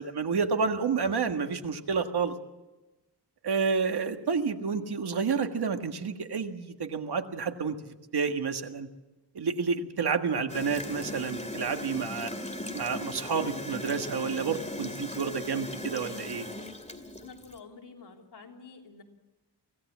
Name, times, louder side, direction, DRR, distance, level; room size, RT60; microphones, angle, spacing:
voice 1, 0.0-2.3 3.4-7.8 8.1-8.9 9.4-12.3 12.7-16.4, right 5 dB, 70° right, 6 dB, 1.7 m, -29 dB
Gurgling / Toilet flush, 10.5-17.6, left 1 dB, 15° left, 2.3 m, -38 dB
voice 2, 17.1-19.0, left 5 dB, 80° left, 1 dB, 3.5 m, -49 dB
24.5 x 17.0 x 7.4 m, 1.1 s
wide cardioid pair, 125°, 40 cm